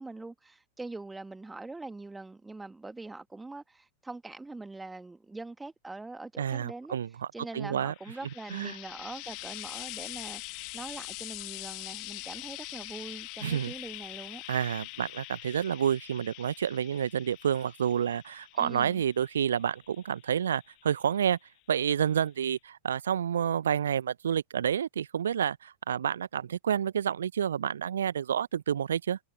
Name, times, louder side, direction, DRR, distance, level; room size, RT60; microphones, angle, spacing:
voice 1, 0.0-14.4 18.5-19.0, right 3 dB, 10° right, 1.5 m, -43 dB
voice 2, 6.4-7.1 7.5-7.9 8.5-8.8 13.4-13.7 14.5-21.4 21.7-29.2, right 8 dB, 65° right, 0.8 m, -29 dB
Frying (food), 7.8-21.2 22.2-22.3, left 27 dB, 40° left, 1.5 m, -44 dB
figure-of-eight pair, 90°, 0 cm